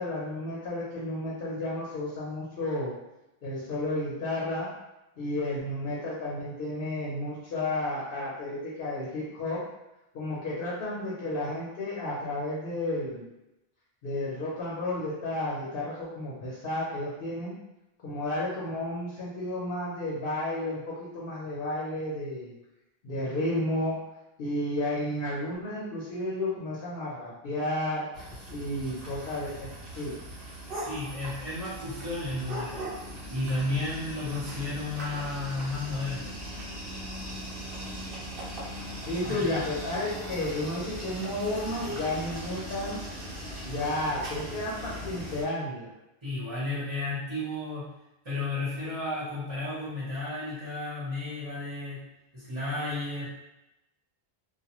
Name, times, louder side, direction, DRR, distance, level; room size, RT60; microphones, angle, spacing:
voice 1, 0.0-2.9 3.4-4.7 5.2-9.6 10.1-13.2 14.0-17.5 18.0-22.5 23.0-23.9 24.4-28.1 28.5-29.7 30.0-30.2 39.0-43.0 43.6-45.9, left 1 dB, 70° left, -6 dB, 0.9 m, -32 dB
sound 1, 28.1-45.4, equal, 65° right, 1.0 m, -39 dB
voice 2, 30.7-32.9 33.3-36.3 39.2-39.5 46.2-47.9 48.2-52.0 52.3-53.3, left 2 dB, 30° right, -11 dB, 1.0 m, -33 dB
2.3 x 2.2 x 2.9 m, 0.94 s
omnidirectional pair, 1.0 m